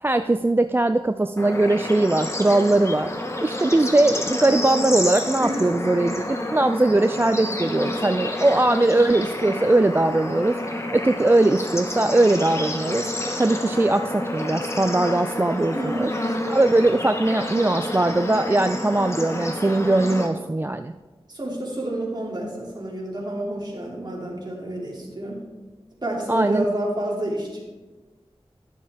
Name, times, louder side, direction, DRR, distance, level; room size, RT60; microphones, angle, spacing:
voice 1, 0.0-3.1 3.4-6.2 6.5-10.6 10.9-13.1 13.4-16.1 16.5-20.9 26.3-26.7, right 2 dB, 20° right, 8 dB, 0.3 m, -20 dB
Bird / Insect / Frog, 1.4-20.3, left 1 dB, 25° left, 1.2 m, -29 dB
voice 2, 5.4-5.7 15.7-16.1 21.3-25.4 26.0-27.7, right 1 dB, 45° right, -3 dB, 2.7 m, -29 dB
12.0 x 7.2 x 3.6 m, 1.3 s
wide cardioid pair, 55°, 10 cm